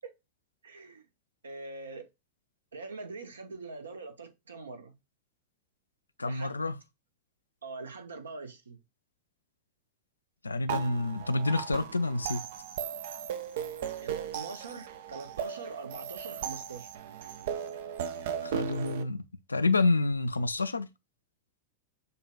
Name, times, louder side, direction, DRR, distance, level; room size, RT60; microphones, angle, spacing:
voice 1, 0.6-1.1 1.4-2.1 2.7-5.0 6.2-6.6 7.6-8.8 14.0-16.9, right 3 dB, 70° right, 0.7 m, -43 dB
voice 2, 6.2-6.8 10.4-12.4 18.4-19.2 19.5-20.9, left 3 dB, 80° left, 0.3 m, -28 dB
sound 1, 10.7-19.0, right 9 dB, 55° right, 0.4 m, -37 dB
6.5 x 2.2 x 2.2 m
figure-of-eight pair, 90°, 0 cm